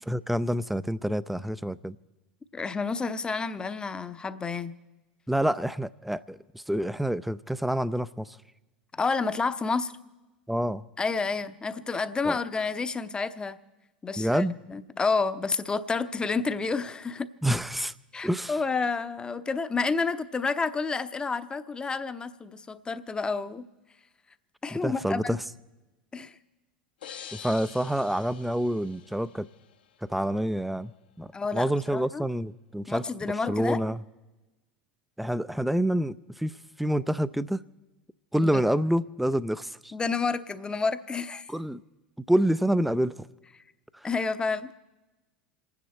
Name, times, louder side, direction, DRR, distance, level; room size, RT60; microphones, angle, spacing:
voice 1, 0.1-2.0 5.3-8.4 10.5-10.8 12.3-12.4 14.2-14.6 17.4-17.9 18.2-18.6 24.7-25.4 27.3-29.5 30.0-30.9 31.2-33.0 33.5-34.0 35.2-36.5 36.8-37.6 38.3-39.9 41.5-41.8 42.3-43.3, right 1 dB, ahead, 0.5 m, -27 dB
voice 2, 2.5-4.8 8.9-9.9 11.0-13.6 14.0-17.3 18.1-23.7 24.6-25.4 26.1-26.4 27.2-27.3 31.3-32.2 32.9-33.8 38.4-38.6 39.9-41.5 43.5-43.6 44.0-44.7, left 4 dB, 15° left, 0.8 m, -30 dB
sound 1, 27.0-29.8, left 8 dB, 70° left, 1.1 m, -46 dB
28.0 x 9.6 x 4.3 m
figure-of-eight pair, 80°, 5 cm